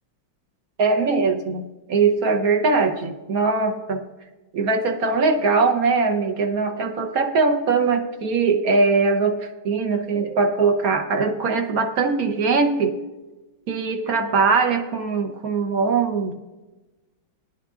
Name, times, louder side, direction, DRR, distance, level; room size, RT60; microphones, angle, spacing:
voice 1, 0.8-4.0 4.5-13.0 13.7-16.4, right 4 dB, 55° right, 5 dB, 1.0 m, -21 dB
18.5 x 11.0 x 2.4 m, 1.1 s
omnidirectional pair, 2.3 m